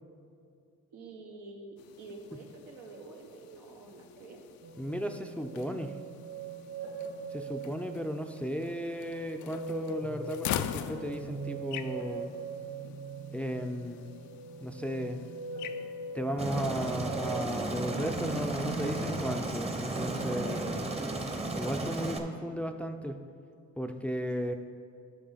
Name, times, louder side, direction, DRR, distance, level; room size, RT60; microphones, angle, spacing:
voice 1, 0.9-4.4 20.3-20.8, right 3 dB, 85° right, 1 dB, 1.3 m, -47 dB
sound 1, 1.8-18.9, left 11 dB, 75° left, 0.5 m, -44 dB
sound 2, 4.6-20.9 21.3-22.0, right 4 dB, 60° right, 2.2 m, -42 dB
voice 2, 4.8-6.0 7.3-12.4 13.3-14.1 14.6-15.2 16.1-20.8 21.5-23.2 23.8-24.5, equal, 5° left, 6 dB, 0.5 m, -35 dB
Aircraft, 16.4-22.2, right 2 dB, 20° right, 0.8 m, -34 dB
12.5 x 5.4 x 4.0 m, 2.3 s
cardioid pair, 90°, 30 cm